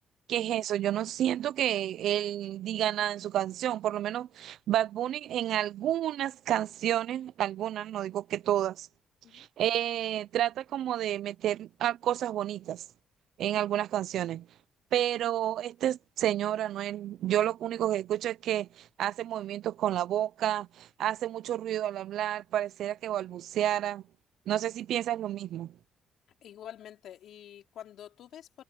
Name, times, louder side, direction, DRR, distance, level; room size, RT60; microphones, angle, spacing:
voice 1, 0.3-8.9 9.3-12.8 13.4-14.5 14.9-24.0 24.5-25.7, right 12 dB, 75° right, 0.5 m, -30 dB
voice 2, 26.4-28.6, left 10 dB, 70° left, 3.8 m, -47 dB
cardioid pair, 110°, 0 cm